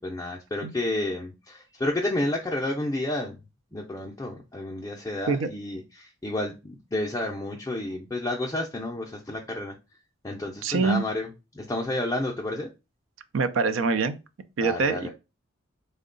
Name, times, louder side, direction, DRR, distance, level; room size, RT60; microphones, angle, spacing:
voice 1, 0.0-3.4 3.7-9.8 10.2-11.3 11.5-12.7 14.6-15.1, left 1 dB, 15° left, 0.4 m, -30 dB
voice 2, 10.6-11.1 13.3-14.1 14.6-15.1, right 4 dB, 75° right, 0.4 m, -24 dB
3.7 x 2.1 x 3.7 m
head